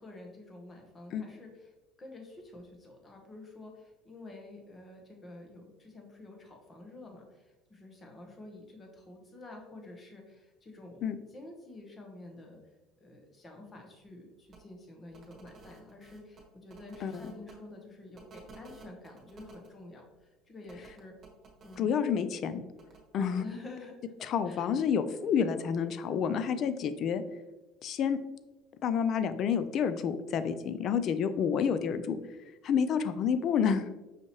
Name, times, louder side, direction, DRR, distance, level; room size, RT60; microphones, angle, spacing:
voice 1, 0.0-12.6 13.0-21.1 21.6-21.9 23.4-24.7, left 2 dB, 25° left, 2 dB, 1.0 m, -49 dB
sound 1, 14.5-14.6 15.1-17.5 18.1-19.7 20.7-21.8 22.8-23.0, right 3 dB, 40° right, 1.2 m, -53 dB
voice 2, 17.0-17.3 21.8-22.6 23.1-23.4 24.2-27.2 27.8-28.2 28.8-32.2 32.6-33.9, left 7 dB, 55° left, 12 dB, 0.3 m, -29 dB
5.7 x 2.7 x 3.0 m, 1.1 s
supercardioid pair, 95°, 0 cm